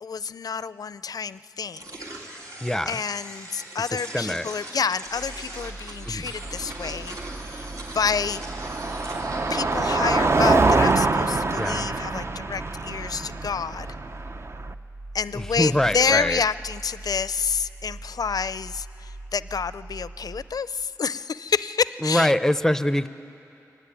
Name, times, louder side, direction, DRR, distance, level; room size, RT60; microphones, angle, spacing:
voice 1, 0.0-1.9 2.9-7.2 7.5-7.7 7.9-8.4 9.5-13.9 15.1-22.3, left 6 dB, 75° left, 16 dB, 0.4 m, -28 dB
sound 1, 1.8-10.9, right 1 dB, 60° right, 3.2 m, -40 dB
voice 2, 2.6-3.0 3.9-4.4 6.1-6.3 11.6-11.9 15.3-16.4 22.0-23.1, left 1 dB, 5° left, 13 dB, 0.6 m, -24 dB
sound 2, 5.0-20.4, right 2 dB, 80° right, 6.2 m, -41 dB
Car passing by, 6.5-14.7, right 3 dB, 45° right, 0.6 m, -25 dB
23.5 x 17.5 x 9.9 m, 2.7 s
wide cardioid pair, 95°, 7 cm